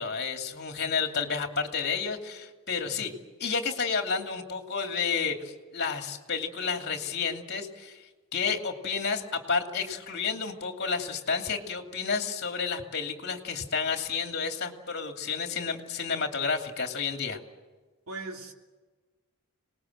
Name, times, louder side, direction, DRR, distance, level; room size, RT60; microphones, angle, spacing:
voice 1, 0.0-3.1 3.4-8.0 8.3-17.4, left 5 dB, 50° left, 2.7 m, -31 dB
voice 2, 18.1-18.5, right 3 dB, 75° right, 3.0 m, -40 dB
26.5 x 20.0 x 7.6 m
head